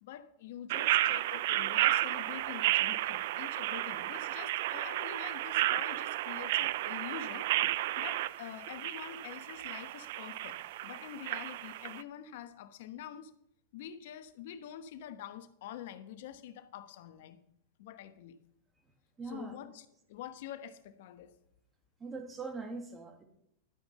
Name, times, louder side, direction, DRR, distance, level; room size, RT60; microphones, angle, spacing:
voice 1, 0.0-7.5 8.0-13.3 13.7-17.4 17.8-18.4 19.2-21.4, left 10 dB, 65° left, 1.0 m, -46 dB
sound 1, 0.7-12.0, right 15 dB, 65° right, 0.4 m, -32 dB
voice 2, 19.2-19.6 22.0-23.2, right 3 dB, 20° right, 1.9 m, -41 dB
12.0 x 5.2 x 7.4 m
hypercardioid pair, 120°, 0 cm